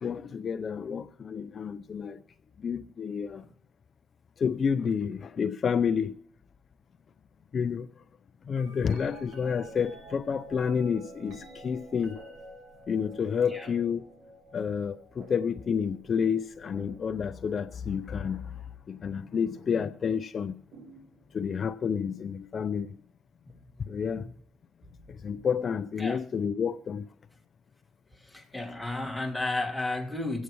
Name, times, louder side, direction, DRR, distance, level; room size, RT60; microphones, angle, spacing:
voice 1, 0.0-2.2 2.6-3.5 4.4-6.2 7.5-8.0 8.4-12.2 12.9-14.0 14.5-20.6 21.3-23.0 23.8-24.3 25.1-27.1, left 6 dB, 50° left, 0.5 m, -30 dB
sound 1, 8.5-18.6 19.6-20.0 20.7-21.7 23.5-23.6, right 1 dB, 80° right, 2.6 m, -50 dB
voice 2, 23.9-24.3 26.0-26.2 28.1-30.4, left 2 dB, ahead, 2.0 m, -34 dB
24.5 x 8.3 x 3.1 m
cardioid pair, 90°, 0 cm